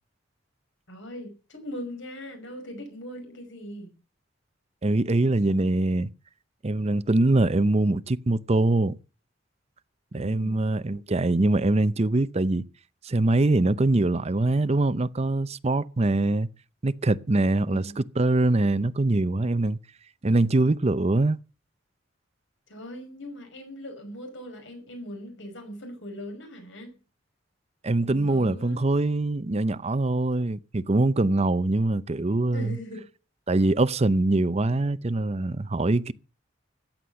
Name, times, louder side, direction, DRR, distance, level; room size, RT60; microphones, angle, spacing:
voice 1, 0.9-3.9 10.1-10.6 17.7-18.0 22.7-27.0 28.0-28.9 32.5-33.1, equal, 80° left, 5.6 m, -40 dB
voice 2, 4.8-6.1 6.6-8.9 10.1-12.6 13.0-16.5 16.8-19.8 20.2-21.4 27.8-32.8 33.5-36.1, right 2 dB, 35° right, 0.6 m, -23 dB
15.0 x 9.5 x 6.9 m
head